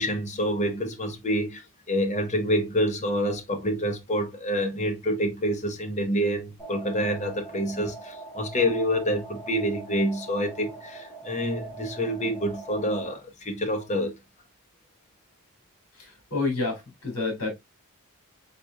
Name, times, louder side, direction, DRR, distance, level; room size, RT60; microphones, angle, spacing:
voice 1, 0.0-14.1, equal, 30° left, 0.9 m, -27 dB
sound 1, 6.6-13.1, right 3 dB, 5° right, 1.9 m, -42 dB
voice 2, 15.9-17.5, left 3 dB, 75° left, 2.8 m, -29 dB
4.2 x 4.1 x 2.4 m
head